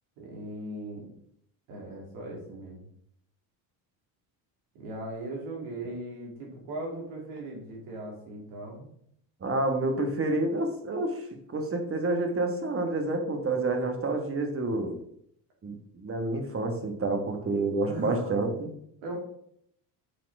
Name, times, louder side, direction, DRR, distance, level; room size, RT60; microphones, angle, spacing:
voice 1, 0.2-1.1 1.7-2.8 4.7-8.9 17.8-18.4 19.0-19.2, right 1 dB, 85° right, -1 dB, 2.8 m, -39 dB
voice 2, 9.4-11.2 11.5-15.0 15.6-18.7, right 2 dB, 30° right, 5 dB, 1.4 m, -28 dB
6.5 x 4.2 x 4.7 m, 0.70 s
cardioid pair, 100°, 44 cm